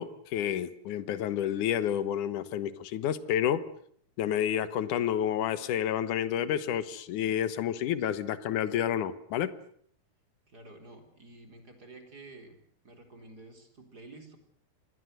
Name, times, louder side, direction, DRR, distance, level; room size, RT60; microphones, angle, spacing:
voice 1, 0.0-3.7 4.2-9.5, left 10 dB, 65° left, 14 dB, 2.3 m, -30 dB
voice 2, 10.5-12.6 12.8-14.4, right 2 dB, 25° right, 5 dB, 4.0 m, -50 dB
27.0 x 21.0 x 7.9 m, 0.63 s
omnidirectional pair, 4.7 m